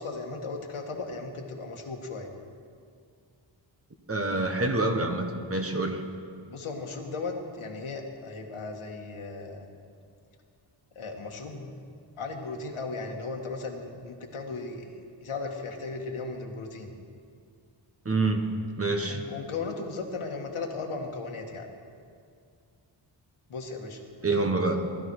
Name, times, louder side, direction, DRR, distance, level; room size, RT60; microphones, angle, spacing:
voice 1, 0.0-2.3 6.5-9.7 11.0-11.7 12.2-16.9 19.1-21.7 23.5-24.0, left 3 dB, 85° left, 2 dB, 1.9 m, -36 dB
voice 2, 4.1-6.0 18.0-18.4 18.8-19.3 24.2-24.9, right 2 dB, 30° right, 4 dB, 1.3 m, -27 dB
19.5 x 13.0 x 4.8 m, 2.3 s
wide cardioid pair, 115°, 49 cm